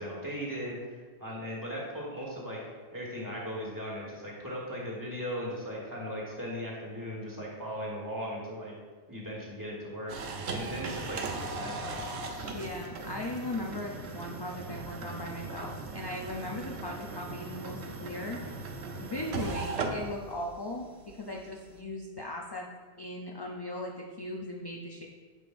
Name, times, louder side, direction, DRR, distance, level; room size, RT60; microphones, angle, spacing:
voice 1, 0.0-2.6 2.9-8.7 9.1-10.1 10.5-12.0, equal, 20° right, -5 dB, 1.5 m, -38 dB
sound 1, 10.1-21.8, right 3 dB, 80° right, 0.9 m, -38 dB
voice 2, 12.5-18.4 19.0-22.7 23.0-25.1, left 1 dB, 40° left, 0 dB, 0.4 m, -38 dB
9.8 x 4.9 x 2.6 m, 1.5 s
omnidirectional pair, 1.1 m